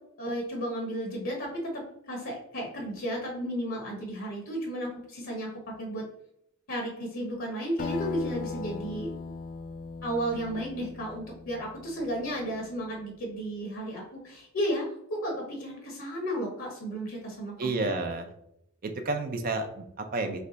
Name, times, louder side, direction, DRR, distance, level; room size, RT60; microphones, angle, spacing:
voice 1, 0.2-5.5 5.8-6.0 6.7-9.1 10.0-17.9, equal, 65° left, 0 dB, 1.0 m, -33 dB
Acoustic guitar, 7.8-12.6, left 4 dB, 40° left, 0.3 m, -38 dB
voice 2, 17.6-18.3 18.8-20.4, right 3 dB, 45° right, 6 dB, 0.4 m, -30 dB
3.3 x 3.2 x 3.9 m, 0.75 s
head